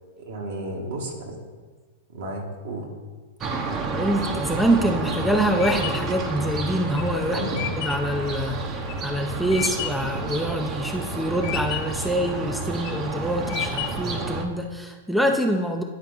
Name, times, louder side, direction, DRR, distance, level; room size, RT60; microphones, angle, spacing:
voice 1, 0.2-1.4 2.1-2.9 7.3-7.7, right 1 dB, 65° right, 0 dB, 1.8 m, -32 dB
sound 1, 3.4-14.4, right 3 dB, 35° right, 0.9 m, -30 dB
voice 2, 3.9-8.6 9.0-15.8, right 1 dB, ahead, 3 dB, 0.5 m, -25 dB
sound 2, 5.0-10.2 10.6-11.1 11.4-12.1 12.6-13.1 13.5-14.2, left 14 dB, 55° left, 0.3 m, -33 dB
9.7 x 4.3 x 4.0 m, 1.4 s
hypercardioid pair, 115°, 0 cm